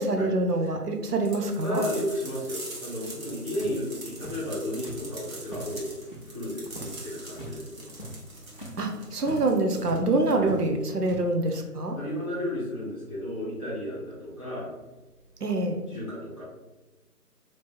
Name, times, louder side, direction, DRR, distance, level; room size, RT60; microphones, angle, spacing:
voice 1, 0.0-1.8 8.8-12.0 15.4-15.8, right 2 dB, 75° right, 4 dB, 0.9 m, -26 dB
sound 1, 1.3-10.6, right 2 dB, 60° right, 1.4 m, -43 dB
voice 2, 1.6-5.9 6.3-7.9 10.3-10.5 11.9-14.7 15.9-16.4, left 1 dB, 20° right, -10 dB, 1.1 m, -33 dB
sound 2, 3.0-6.3 6.6-7.0 7.2-7.6 7.9-10.1 10.3-11.2, equal, 35° left, 0.7 m, -42 dB
3.2 x 3.1 x 4.2 m, 1.1 s
figure-of-eight pair, 180°, 47 cm